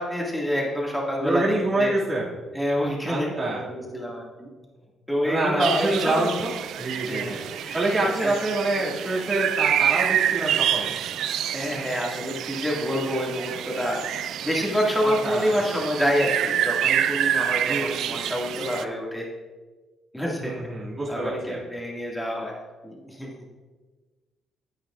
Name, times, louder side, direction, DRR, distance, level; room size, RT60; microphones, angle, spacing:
voice 1, 0.0-1.9 2.5-4.5 5.1-6.4 7.1-8.3 11.5-19.3 20.1-20.5 21.1-23.3, equal, 5° left, -3 dB, 2.0 m, -27 dB
voice 2, 1.2-2.3 3.1-3.6 5.2-6.5 6.8-7.4 7.7-10.9 15.0-15.5 17.7-17.8 18.2-18.4 20.4-21.6, right 2 dB, 25° right, -8 dB, 2.2 m, -26 dB
sound 1, 5.6-18.8, right 10 dB, 80° right, 0.4 m, -27 dB
10.0 x 8.4 x 2.5 m, 1.3 s
cardioid pair, 90°, 0 cm